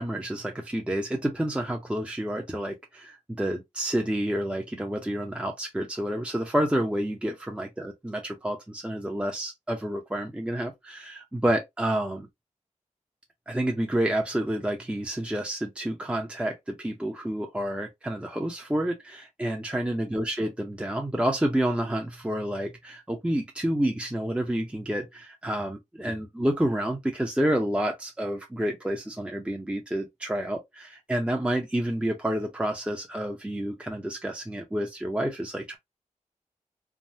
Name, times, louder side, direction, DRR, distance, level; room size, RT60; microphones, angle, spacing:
voice 1, 0.0-12.3 13.5-35.8, right 1 dB, 10° right, 0.7 m, -29 dB
3.4 x 2.1 x 2.6 m
wide cardioid pair, 60°, 13 cm